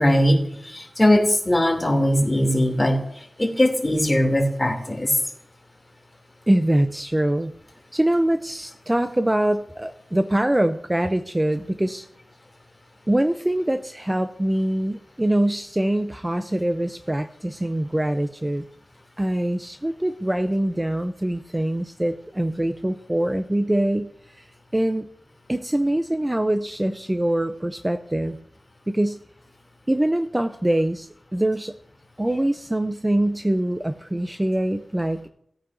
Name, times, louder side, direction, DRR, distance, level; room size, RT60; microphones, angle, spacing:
voice 1, 0.0-3.0 3.4-5.2, left 1 dB, 20° left, 1 dB, 2.7 m, -20 dB
voice 2, 6.5-7.5 7.9-12.1 13.1-18.7 19.2-24.5 24.7-25.1 25.5-28.4 28.9-29.2 29.9-31.8 32.2-35.3, right 1 dB, 15° right, 9 dB, 0.5 m, -23 dB
17.0 x 9.5 x 2.6 m, 0.71 s
wide cardioid pair, 70°, 0 cm